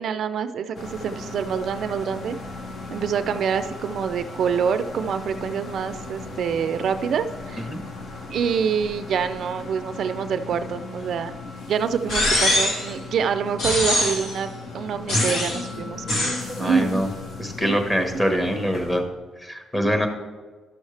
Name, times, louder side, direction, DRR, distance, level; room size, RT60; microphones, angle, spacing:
voice 1, 0.0-2.4 2.9-7.7 8.3-11.4 11.7-14.5 14.7-16.0 16.6-17.0 17.6-17.7, right 7 dB, 65° right, 10 dB, 0.4 m, -26 dB
sound 1, 0.7-19.0, left 3 dB, 60° left, 1.2 m, -37 dB
sound 2, 12.1-12.9 13.6-14.3 15.1-15.6 16.1-16.5, left 1 dB, 85° left, 1.8 m, -22 dB
voice 2, 16.6-17.1 17.4-19.0 19.4-20.1, equal, 15° left, 5 dB, 1.2 m, -24 dB
11.5 x 6.3 x 3.3 m, 1.3 s
cardioid pair, 105°, 0 cm